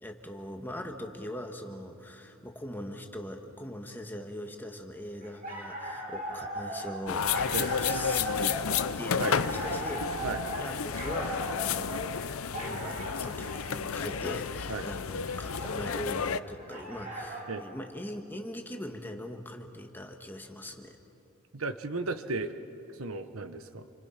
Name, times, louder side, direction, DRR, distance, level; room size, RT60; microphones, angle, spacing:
voice 1, 0.0-8.6 9.0-10.2 10.6-12.0 12.5-21.0, equal, 10° left, 3 dB, 1.6 m, -41 dB
sound 1, 5.2-17.7, right 1 dB, 40° right, 4.6 m, -39 dB
sound 2, 7.1-16.4, left 7 dB, 80° left, 0.6 m, -32 dB
voice 2, 21.5-22.6 23.0-23.8, right 3 dB, 80° right, 10 dB, 1.2 m, -34 dB
29.0 x 25.0 x 5.9 m, 2.7 s
head